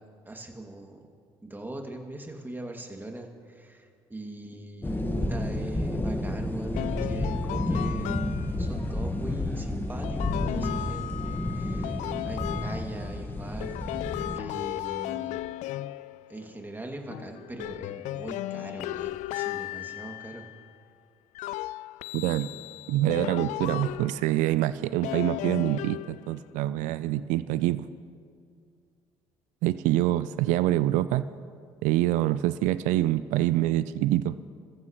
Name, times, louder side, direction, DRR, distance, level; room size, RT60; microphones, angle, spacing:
voice 1, 0.2-1.0 1.4-8.1 8.6-13.8 14.3-15.4 16.3-20.5, right 2 dB, 15° right, 2 dB, 2.4 m, -41 dB
sound 1, 4.8-14.3, left 1 dB, 15° left, 1.6 m, -30 dB
sound 2, 6.7-8.7 10.0-13.2 13.6-16.7 17.1-20.7 21.3-24.5 25.0-26.5, left 15 dB, 60° left, 0.4 m, -36 dB
voice 2, 22.1-22.5 22.9-27.9 29.6-31.2 31.8-34.4, right 14 dB, 65° right, 15 dB, 0.5 m, -25 dB
28.0 x 14.5 x 3.1 m, 2.2 s
hypercardioid pair, 55°, 14 cm